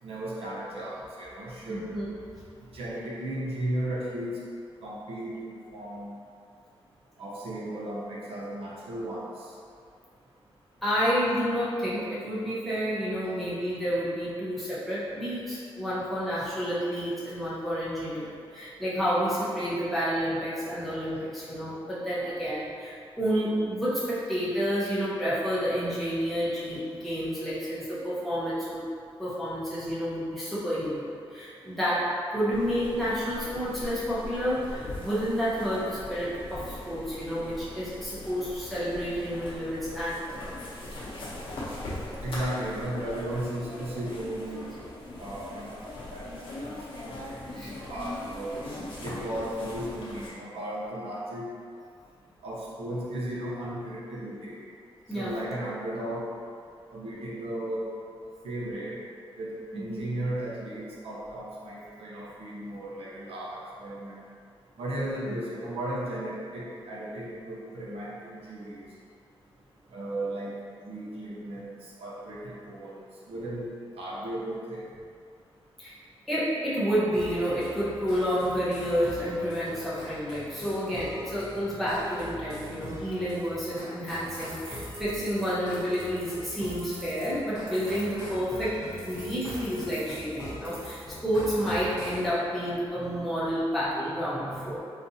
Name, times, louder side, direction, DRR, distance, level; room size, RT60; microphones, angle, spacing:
voice 1, 0.0-1.9 2.7-4.3 4.8-6.2 7.2-9.3 42.2-44.6 45.2-45.8 46.1-46.8 47.0-47.2 47.5-48.6 49.0-51.4 52.4-54.6 55.1-56.3 56.9-57.9 58.4-59.0 59.4-64.3 64.8-68.8 69.9-73.0 73.3-73.7 74.0-74.9, right 1 dB, 80° right, -6 dB, 0.7 m, -35 dB
voice 2, 1.7-2.1 10.8-28.9 29.2-40.6 46.2-46.4 47.5-47.7 55.1-55.3 59.7-60.1 65.3-65.4 75.8-76.0 76.3-94.8, equal, ahead, -11 dB, 0.8 m, -30 dB
sound 1, 32.5-50.3, left 1 dB, 65° left, 0.8 m, -40 dB
sound 2, 77.1-92.3, left 1 dB, 40° left, 1.0 m, -42 dB
sound 3, 84.1-88.2 89.0-91.1, right 1 dB, 25° right, 0.7 m, -47 dB
3.8 x 2.5 x 2.7 m, 2.3 s
wide cardioid pair, 175°, 10 cm